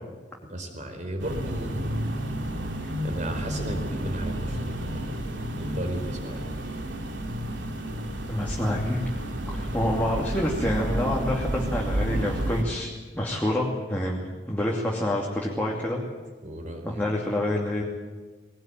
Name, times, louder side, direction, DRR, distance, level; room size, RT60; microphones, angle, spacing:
voice 1, 0.5-1.9 3.0-4.7 4.9-5.2 5.6-6.5 16.4-17.1, right 1 dB, 40° right, 5 dB, 4.5 m, -35 dB
sound 1, 1.2-12.6, right 1 dB, 90° right, 2.8 m, -31 dB
voice 2, 8.2-9.0 9.5-14.2 14.5-16.0 16.8-17.8, left 1 dB, 10° left, -3 dB, 2.6 m, -27 dB
21.0 x 19.0 x 9.2 m, 1.4 s
head